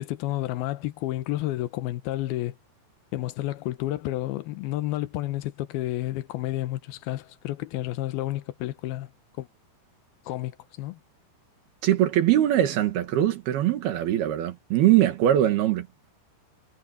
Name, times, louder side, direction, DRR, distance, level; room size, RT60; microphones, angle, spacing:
voice 1, 0.0-2.5 3.1-9.1 9.4-9.5 10.3-10.5 10.8-11.0, left 15 dB, 80° left, 2.9 m, -30 dB
voice 2, 11.8-15.9, right 12 dB, 80° right, 3.7 m, -22 dB
omnidirectional pair, 4.4 m